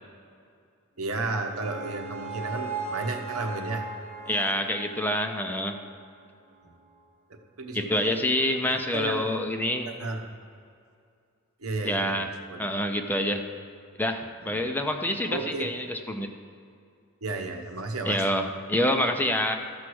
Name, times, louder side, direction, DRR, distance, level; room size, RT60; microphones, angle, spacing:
voice 1, 1.0-3.9 6.6-6.7 7.3-8.2 8.9-9.3 9.9-10.2 11.6-12.6 14.4-14.6 15.3-15.7 17.2-18.2, right 3 dB, 80° right, 4 dB, 1.1 m, -33 dB
sound 1, 1.1-6.2, right 4 dB, 35° right, 0.9 m, -38 dB
voice 2, 4.3-5.8 7.7-9.9 11.8-12.3 12.6-13.5 14.0-16.3 18.0-19.5, left 1 dB, 10° left, 5 dB, 0.6 m, -27 dB
14.0 x 4.7 x 6.2 m, 2.4 s
head